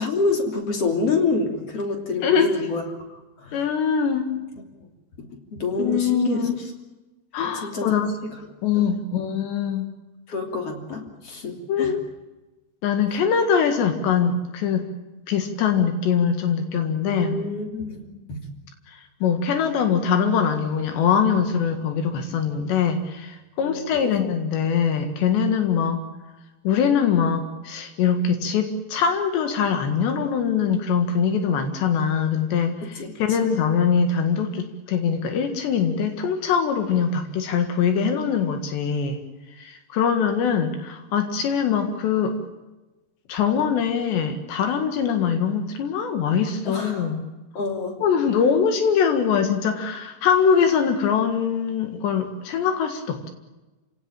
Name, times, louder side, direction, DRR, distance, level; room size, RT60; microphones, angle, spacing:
voice 1, 0.0-2.8 3.1-3.6 5.5-6.5 7.6-7.9 8.7-9.0 10.3-11.9 17.1-18.4 23.6-24.2 33.0-33.1 33.4-33.5 46.7-47.2 47.6-48.0, left 3 dB, 35° left, 3 dB, 3.6 m, -27 dB
voice 2, 2.2-2.5 3.5-4.3 5.8-6.6 7.3-8.1 8.6-9.9 11.7-12.0 12.8-14.8 15.3-17.4 18.9-26.0 26.7-39.2 39.6-42.4 43.3-47.3 48.0-53.3, left 7 dB, 75° left, 7 dB, 4.0 m, -22 dB
28.5 x 18.0 x 8.9 m, 1.1 s
omnidirectional pair, 5.1 m